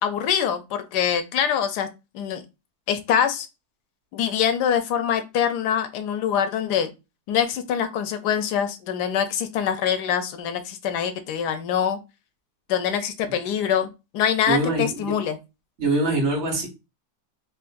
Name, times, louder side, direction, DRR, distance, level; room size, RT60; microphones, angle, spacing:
voice 1, 0.0-1.9 2.1-2.4 2.9-3.5 4.1-6.9 7.3-12.0 12.7-15.4, left 8 dB, 75° left, 9 dB, 1.1 m, -24 dB
voice 2, 14.5-15.2 15.8-16.7, right 2 dB, 45° right, 2 dB, 1.1 m, -23 dB
3.8 x 2.4 x 2.5 m, 0.26 s
omnidirectional pair, 1.8 m